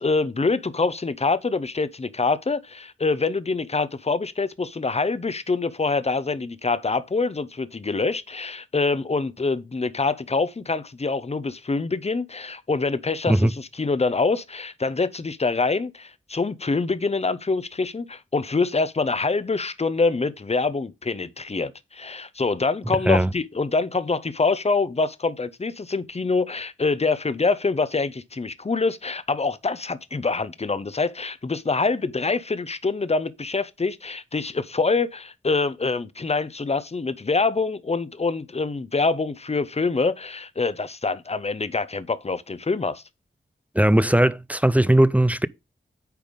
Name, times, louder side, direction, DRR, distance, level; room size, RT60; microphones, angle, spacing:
voice 1, 0.0-43.0, left 3 dB, 30° left, 0.7 m, -25 dB
voice 2, 43.7-45.5, right 1 dB, 5° right, 0.4 m, -18 dB
9.2 x 3.4 x 5.2 m
wide cardioid pair, 65°, 21 cm